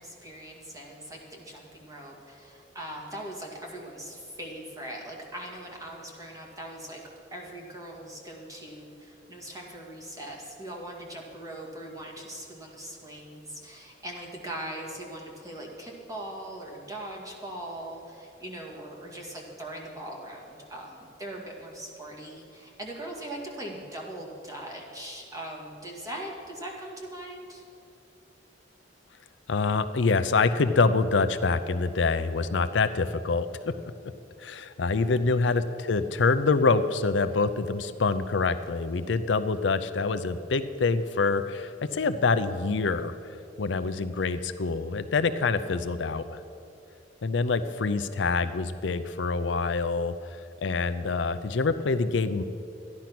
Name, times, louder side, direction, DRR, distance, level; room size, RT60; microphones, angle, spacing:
voice 1, 0.0-7.0 7.3-27.6, right 1 dB, 20° right, -1 dB, 2.1 m, -40 dB
voice 2, 29.5-33.7 34.4-43.1 43.6-46.4 47.2-52.4, left 4 dB, 75° left, 11 dB, 0.5 m, -26 dB
13.0 x 10.5 x 6.0 m, 2.6 s
head